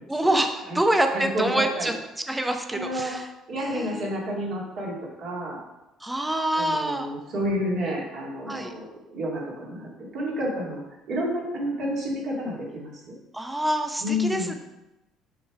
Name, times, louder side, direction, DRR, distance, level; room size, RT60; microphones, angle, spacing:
voice 1, 0.1-1.9 2.3-3.3 3.6-4.1 6.0-7.1 8.5-8.7 13.3-14.5, right 1 dB, 10° right, 5 dB, 0.8 m, -26 dB
voice 2, 1.1-1.9 2.7-3.2 3.5-5.6 6.5-12.9 14.0-14.6, equal, 60° right, -3 dB, 2.3 m, -30 dB
7.2 x 3.2 x 4.9 m, 0.96 s
hypercardioid pair, 65°, 0 cm